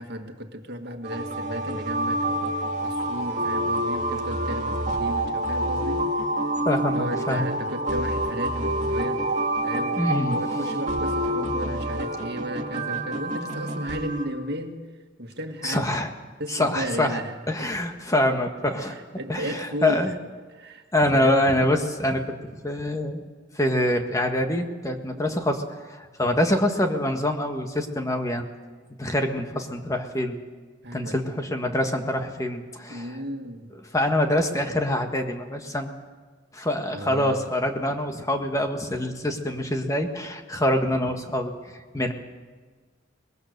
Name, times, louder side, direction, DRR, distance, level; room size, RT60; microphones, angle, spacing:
voice 1, 0.0-2.5 2.8-6.3 7.0-9.2 9.6-10.0 10.2-14.8 15.2-15.9 16.4-17.3 18.8-20.1 20.5-21.5 25.1-25.2 30.8-31.2 32.9-33.7 36.9-37.4, equal, 60° right, 5 dB, 2.0 m, -34 dB
sound 1, 1.0-14.3, right 1 dB, 40° right, 2.2 m, -27 dB
voice 2, 6.6-7.5 10.0-10.3 15.6-16.1 16.5-17.2 17.5-19.0 19.3-20.1 20.9-22.4 22.6-23.2 23.5-25.6 25.9-28.5 29.0-30.4 30.9-33.2 33.9-35.9 36.5-42.1, left 1 dB, 15° left, 4 dB, 1.6 m, -25 dB
23.5 x 21.0 x 6.8 m, 1.4 s
head